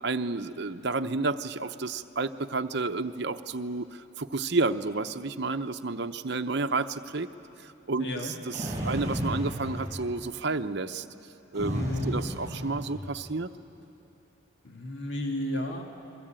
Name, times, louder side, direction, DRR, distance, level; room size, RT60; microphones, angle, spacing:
voice 1, 0.0-7.3 7.9-11.0 11.5-13.5, right 3 dB, 55° right, 7 dB, 0.8 m, -31 dB
voice 2, 8.0-8.4 11.7-12.2 14.6-15.8, left 1 dB, 60° left, 2 dB, 2.1 m, -32 dB
sound 1, 8.5-10.4 11.5-13.4, equal, 15° right, 6.5 m, -34 dB
29.0 x 22.5 x 8.9 m, 2.8 s
head